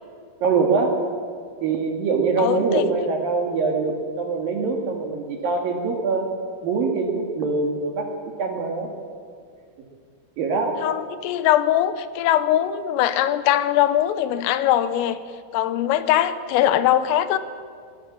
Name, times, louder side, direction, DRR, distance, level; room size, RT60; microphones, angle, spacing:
voice 1, 0.4-1.0 1.6-6.3 6.6-8.1 8.4-8.9 10.4-10.8, right 4 dB, 55° right, 3 dB, 2.9 m, -23 dB
voice 2, 2.4-2.9 10.8-15.2 15.5-17.4, left 12 dB, 90° left, 13 dB, 3.5 m, -21 dB
21.5 x 19.5 x 7.5 m, 2.1 s
omnidirectional pair, 5.9 m